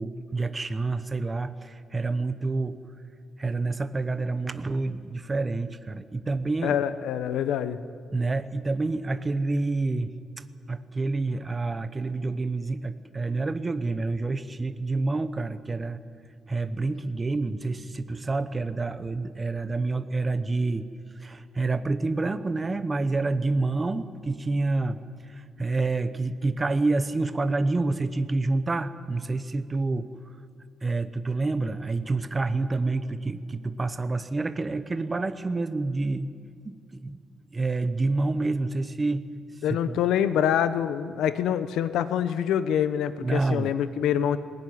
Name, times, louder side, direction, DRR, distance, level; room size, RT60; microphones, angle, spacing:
voice 1, 0.0-2.8 3.4-6.8 8.1-10.1 10.7-16.0 16.5-20.9 21.2-30.1 30.8-36.3 36.6-37.2 37.5-39.3 39.8-40.0 43.2-43.7, right 3 dB, 20° right, 11 dB, 0.9 m, -28 dB
voice 2, 6.6-7.8 39.6-44.4, left 9 dB, 90° left, 13 dB, 1.0 m, -25 dB
20.0 x 19.0 x 9.6 m, 2.2 s
cardioid pair, 155°, 0 cm